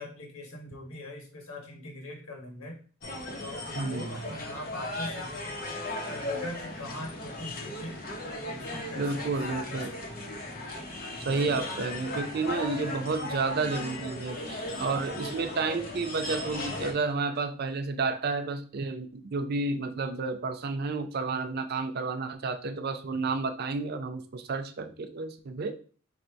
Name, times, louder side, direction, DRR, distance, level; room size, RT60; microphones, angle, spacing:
voice 1, 0.0-2.8 3.4-5.5 6.1-8.0 8.5-9.8 10.1-10.3 11.1-11.3, left 1 dB, 85° left, 1 dB, 1.3 m, -42 dB
sound 1, 3.0-16.9, left 1 dB, 45° left, 0.8 m, -37 dB
voice 2, 3.7-4.2 9.0-9.9 11.2-25.8, right 3 dB, 45° right, 9 dB, 0.4 m, -31 dB
3.2 x 2.6 x 4.5 m, 0.40 s
head